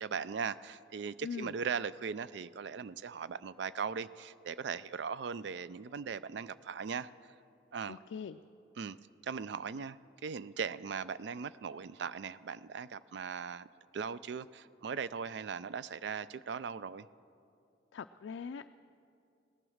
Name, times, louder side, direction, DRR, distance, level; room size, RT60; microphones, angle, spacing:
voice 1, 0.0-7.1 7.7-8.0 8.8-9.0 9.2-13.7 13.9-17.1, right 6 dB, 65° right, 16 dB, 0.4 m, -39 dB
voice 2, 1.2-1.5 7.9-8.4 17.9-18.7, left 6 dB, 75° left, 8 dB, 0.3 m, -42 dB
17.5 x 11.0 x 6.4 m, 2.6 s
head